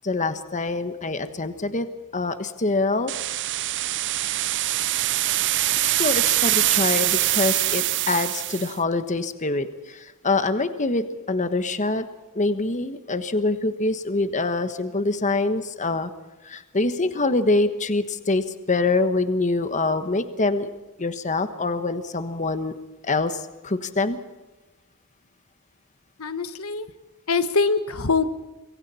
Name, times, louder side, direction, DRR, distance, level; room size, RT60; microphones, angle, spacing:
voice 1, 0.0-1.9 2.1-3.1 6.0-12.1 12.3-16.1 16.4-20.7 21.0-22.7 23.0-24.2, left 3 dB, 35° left, 10 dB, 1.3 m, -25 dB
sound 1, 3.1-8.7, right 15 dB, 55° right, 0.6 m, -23 dB
voice 2, 26.2-26.9 27.3-28.2, left 4 dB, 70° left, 11 dB, 1.3 m, -23 dB
26.5 x 23.5 x 4.3 m, 1.1 s
head